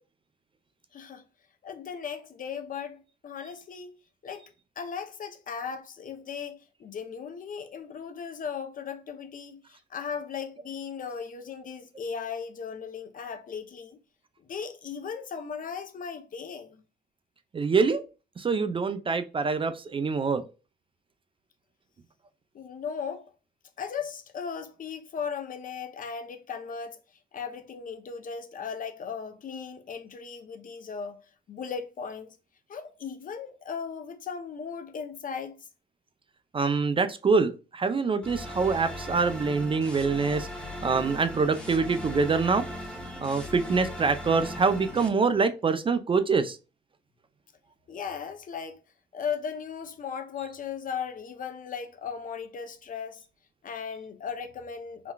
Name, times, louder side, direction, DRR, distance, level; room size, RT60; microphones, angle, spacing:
voice 1, 0.9-1.2 1.6-4.0 4.2-14.0 14.4-16.8 22.5-23.3 23.8-27.0 27.3-32.4 32.7-35.7 47.9-48.8 49.1-53.2 53.6-55.1, left 6 dB, 45° left, 0.5 m, -37 dB
voice 2, 17.5-18.0 18.4-20.4 36.5-40.5 40.8-42.6 43.2-46.6, right 4 dB, 25° right, 0.3 m, -25 dB
sound 1, 38.2-45.1, left 1 dB, 5° left, 0.8 m, -38 dB
3.8 x 2.2 x 2.2 m
cardioid pair, 90°, 20 cm